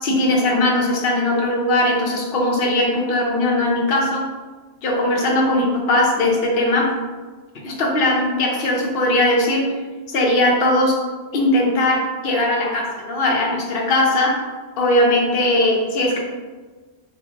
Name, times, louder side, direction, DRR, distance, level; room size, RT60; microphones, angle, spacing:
voice 1, 0.0-4.2 4.8-6.9 7.6-9.6 10.1-10.9 11.3-14.3 14.8-16.2, left 1 dB, 55° left, -1 dB, 0.8 m, -19 dB
3.0 x 2.5 x 3.4 m, 1.4 s
omnidirectional pair, 1.2 m